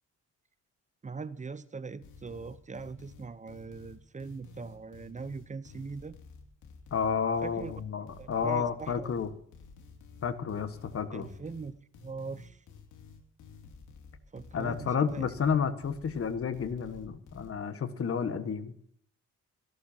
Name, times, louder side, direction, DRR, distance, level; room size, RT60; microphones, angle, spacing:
voice 1, 1.0-6.2 7.4-7.7 8.2-9.1 11.1-12.6 14.3-15.3, right 4 dB, 25° right, 16 dB, 0.8 m, -41 dB
sound 1, 2.0-17.5, left 4 dB, 80° left, 2.7 m, -51 dB
voice 2, 6.9-9.3 10.2-11.3 14.5-18.7, left 6 dB, 50° left, 10 dB, 1.7 m, -31 dB
27.0 x 12.0 x 2.9 m, 0.63 s
cardioid pair, 90°, 30 cm